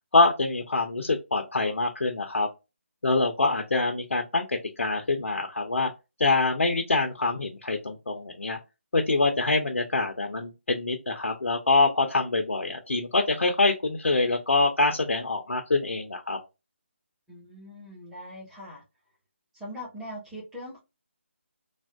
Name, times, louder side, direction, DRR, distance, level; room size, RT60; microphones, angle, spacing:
voice 1, 0.1-2.5 3.0-5.9 6.2-8.6 8.9-16.4, left 3 dB, 75° left, 0.6 m, -25 dB
voice 2, 17.3-18.8 19.5-20.8, equal, 5° right, 1.1 m, -41 dB
3.4 x 2.4 x 2.3 m
figure-of-eight pair, 155°, 7 cm